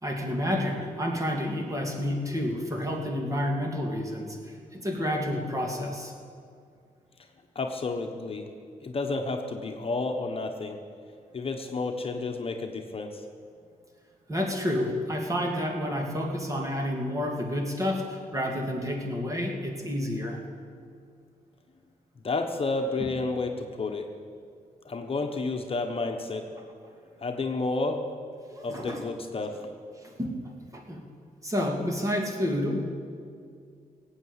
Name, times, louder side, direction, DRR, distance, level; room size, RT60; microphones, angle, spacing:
voice 1, 0.0-6.1 14.3-20.4 23.0-23.1 28.5-29.0 30.0-30.3 30.7-31.0 31.4-32.8, left 1 dB, 20° right, 1 dB, 2.6 m, -30 dB
voice 2, 7.5-8.5 8.8-10.8 11.3-13.2 22.2-24.1 24.8-26.5 27.2-28.1 28.6-29.6, left 3 dB, 40° left, 3 dB, 1.2 m, -31 dB
17.5 x 8.2 x 8.2 m, 2.3 s
cardioid pair, 90°, 15 cm